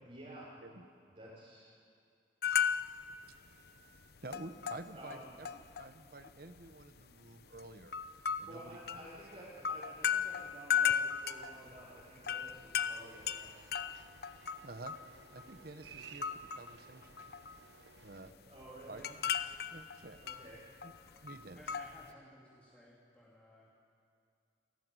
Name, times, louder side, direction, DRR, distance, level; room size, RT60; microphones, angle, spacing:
voice 1, 0.0-0.5 1.2-1.7 4.9-5.3 8.5-13.6 18.4-19.0 20.2-20.6, right 1 dB, 40° right, -8 dB, 5.2 m, -52 dB
sound 1, 2.4-3.2 3.5-3.7 4.0-5.9 6.2-7.0 7.5-15.6 15.8-16.7 17.0-17.7 18.0-22.1, left 8 dB, 55° left, 0.8 m, -36 dB
voice 2, 4.2-7.9 8.4-9.0 14.6-15.0 15.3-17.2 18.0-18.3 18.9-19.3 19.7-20.2 20.8-20.9 21.2-21.6, right 2 dB, 55° right, 10 dB, 1.1 m, -50 dB
sound 2, 13.0-18.3, right 6 dB, 85° right, 1.1 m, -57 dB
voice 3, 21.6-23.7, equal, 5° left, -6 dB, 3.1 m, -58 dB
29.0 x 14.5 x 9.4 m, 2.4 s
head